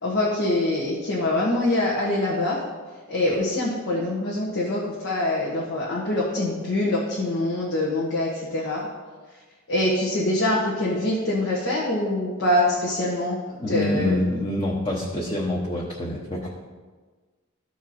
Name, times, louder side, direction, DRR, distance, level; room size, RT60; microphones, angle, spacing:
voice 1, 0.0-2.6 3.1-8.9 9.7-13.4 13.7-14.2, left 1 dB, 65° left, -5 dB, 1.4 m, -24 dB
voice 2, 13.6-16.5, left 1 dB, 25° left, -4 dB, 1.0 m, -26 dB
13.5 x 4.6 x 4.4 m, 1.4 s
head